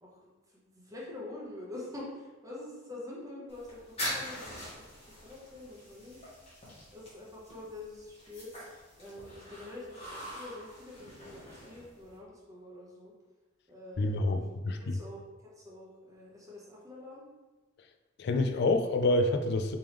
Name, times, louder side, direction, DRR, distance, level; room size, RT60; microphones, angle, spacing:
voice 1, 0.0-6.3 6.9-8.5 9.0-13.1 13.7-14.5 14.8-17.2, left 2 dB, 15° right, -5 dB, 0.9 m, -46 dB
sound 1, 3.5-12.2, equal, 30° left, 1.4 m, -43 dB
voice 2, 14.0-15.0 18.2-19.8, left 2 dB, 55° left, 6 dB, 0.3 m, -27 dB
3.5 x 3.4 x 3.0 m, 1.2 s
head